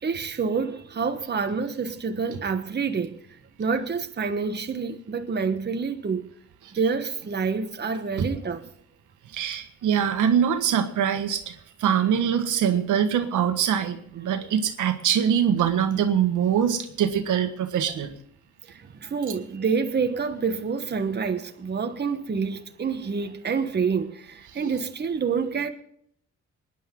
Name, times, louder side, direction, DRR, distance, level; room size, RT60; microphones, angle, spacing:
voice 1, 0.0-3.2 3.6-6.2 6.7-8.6 18.7-25.7, right 5 dB, 35° right, 1.2 m, -27 dB
voice 2, 9.3-18.1, right 8 dB, 85° right, 1.5 m, -23 dB
21.5 x 10.5 x 3.7 m
cardioid pair, 95°, 30 cm